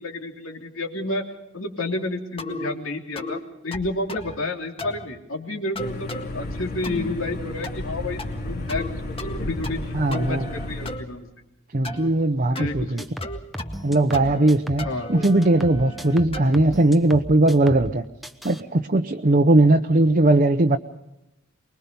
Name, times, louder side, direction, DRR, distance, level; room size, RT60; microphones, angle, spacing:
voice 1, 0.0-11.3 12.5-13.1 14.8-15.1 16.4-16.5 19.7-19.8, left 2 dB, 75° left, 3 dB, 3.1 m, -31 dB
sound 1, 2.4-2.7 3.2-3.4 3.7-4.4 4.8-5.1 5.8-6.3 6.8-7.2 7.6-7.9 8.2-8.9 9.2-9.8 10.1-11.0 11.8-12.1 12.5-12.7 13.2-13.9 14.1-14.5 14.8-16.6, left 1 dB, 25° left, 1.9 m, -35 dB
sound 2, 5.8-11.0, left 2 dB, 50° left, 3.1 m, -33 dB
voice 2, 9.9-10.5 11.7-13.0 13.8-18.0 18.4-20.8, right 2 dB, 40° right, 5 dB, 0.8 m, -19 dB
sound 3, 12.6-15.0 15.2-18.0 18.2-18.6, equal, ahead, 1.0 m, -36 dB
24.5 x 21.5 x 5.4 m, 0.92 s
head